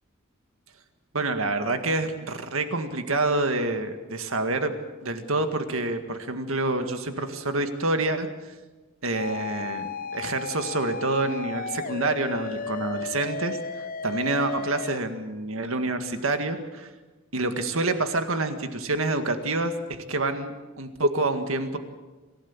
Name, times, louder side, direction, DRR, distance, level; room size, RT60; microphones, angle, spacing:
voice 1, 1.1-4.7 5.0-8.3 9.0-13.6 14.0-16.9 17.3-21.8, right 2 dB, 70° right, 7 dB, 1.9 m, -27 dB
sound 1, 9.1-15.0, left 5 dB, 40° left, 0.6 m, -34 dB
26.5 x 16.5 x 7.3 m, 1.2 s
head